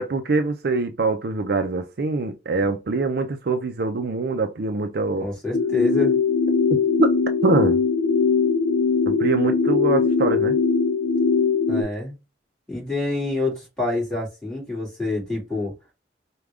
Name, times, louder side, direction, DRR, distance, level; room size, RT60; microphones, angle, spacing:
voice 1, 0.0-5.3 6.7-7.1 7.4-7.8 9.1-10.6, right 3 dB, 55° right, 0.4 m, -24 dB
voice 2, 5.2-6.1 11.7-12.2 12.7-15.7, left 3 dB, 5° left, 2.1 m, -26 dB
sound 1, 5.5-11.8, left 5 dB, 75° left, 0.6 m, -20 dB
4.8 x 2.3 x 3.4 m
head